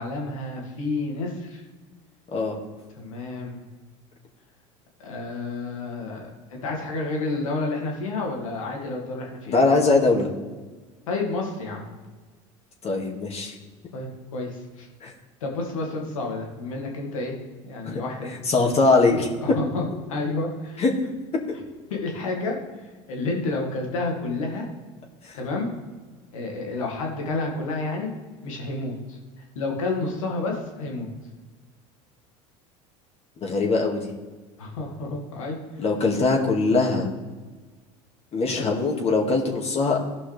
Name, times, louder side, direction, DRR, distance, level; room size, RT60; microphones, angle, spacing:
voice 1, 0.0-1.6 3.0-3.6 5.0-9.6 11.1-11.9 13.9-14.9 15.4-17.3 17.6-18.3 19.4-20.8 21.9-22.6 23.1-24.7 25.3-25.7 26.3-28.1 28.4-29.2 29.6-31.1 34.6-35.6 38.5-38.6, left 3 dB, 90° left, 0 dB, 2.3 m, -30 dB
voice 2, 9.5-10.3 12.8-13.5 15.0-15.1 17.8-18.0 18.5-19.3 20.8-20.9 25.2-25.3 33.4-34.1 35.8-37.1 38.3-40.0, left 3 dB, 40° left, -1 dB, 2.2 m, -21 dB
16.0 x 5.6 x 3.5 m, 1.3 s
hypercardioid pair, 90°, 17 cm